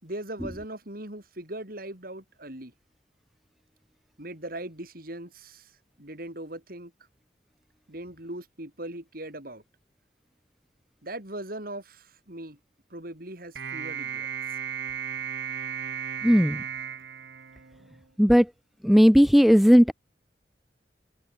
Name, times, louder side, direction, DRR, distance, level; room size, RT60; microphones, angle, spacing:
voice 1, 0.0-2.7 4.2-5.7 6.0-6.9 7.9-9.6 11.0-12.6 12.9-14.6, right 1 dB, 55° right, 5.2 m, -39 dB
sound 1, 13.6-18.1, right 7 dB, 75° right, 1.0 m, -35 dB
voice 2, 16.2-16.6 18.2-18.5 18.8-19.9, equal, ahead, 0.4 m, -16 dB
head